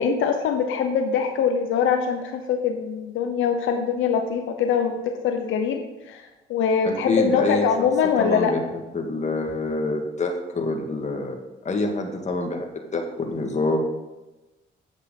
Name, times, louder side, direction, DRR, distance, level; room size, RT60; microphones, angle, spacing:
voice 1, 0.0-6.2 6.5-8.5, left 6 dB, 80° left, 5 dB, 0.9 m, -23 dB
voice 2, 6.8-7.9 8.2-11.4 11.7-13.8, left 2 dB, 35° left, 3 dB, 1.8 m, -26 dB
8.8 x 7.3 x 5.4 m, 1.1 s
cardioid pair, 90°, 20 cm